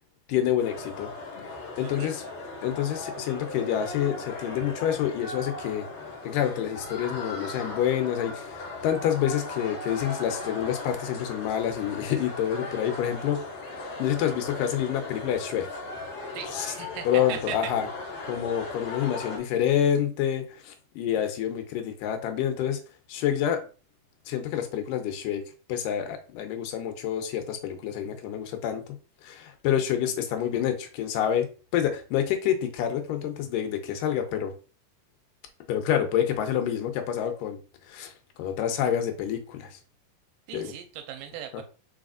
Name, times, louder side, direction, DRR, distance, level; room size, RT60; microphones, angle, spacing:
voice 1, 0.3-1.1 1.4-2.2 2.6-5.9 6.2-13.4 14.0-15.7 16.5-16.7 17.1-17.9 18.2-22.8 23.1-23.6 24.3-25.4 25.7-34.5 35.7-37.6 37.9-38.1 38.4-39.8 40.5-40.7 41.5-41.6, left 10 dB, 80° left, 6 dB, 2.3 m, -28 dB
sound 1, 0.6-19.4, left 3 dB, 50° left, 2.3 m, -38 dB
voice 2, 1.8-2.3 16.3-17.7 40.5-41.6, right 10 dB, 85° right, 7 dB, 2.3 m, -38 dB
4.9 x 4.2 x 2.4 m, 0.35 s
omnidirectional pair, 3.9 m